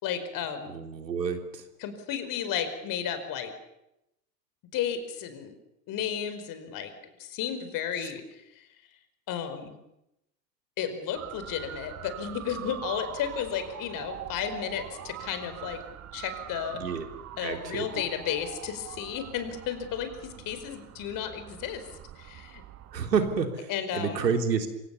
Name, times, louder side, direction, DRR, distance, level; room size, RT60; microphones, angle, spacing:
voice 1, 0.0-0.7 1.8-3.5 4.7-5.5 5.9-6.9 7.2-8.7 9.3-9.7 10.8-15.8 16.1-16.8 17.4-21.8 22.2-22.6 23.7-24.2, left 8 dB, 40° left, 9 dB, 5.0 m, -33 dB
voice 2, 0.7-1.6 8.0-8.1 16.8-17.1 17.4-18.0 22.9-24.7, right 6 dB, 75° right, 5 dB, 3.6 m, -29 dB
Motor vehicle (road) / Siren, 11.1-23.4, right 12 dB, 30° right, 1.8 m, -43 dB
27.0 x 26.0 x 7.1 m, 0.85 s
figure-of-eight pair, 85°, 50 cm